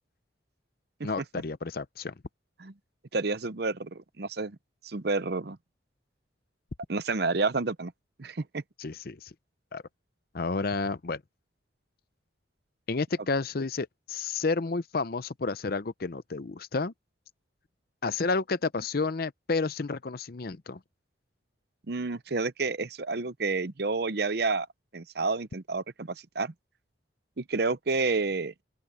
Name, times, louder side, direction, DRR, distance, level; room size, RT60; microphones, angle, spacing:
voice 1, 1.0-2.1 8.8-9.3 9.7-9.8 10.3-11.2 12.9-16.9 18.0-20.8, left 4 dB, 50° left, 0.6 m, -31 dB
voice 2, 3.1-4.6 4.8-5.6 6.9-7.9 8.2-8.6 21.9-24.7 24.9-26.1 26.3-26.5 27.4-28.5, right 3 dB, 55° right, 0.8 m, -29 dB
open air
head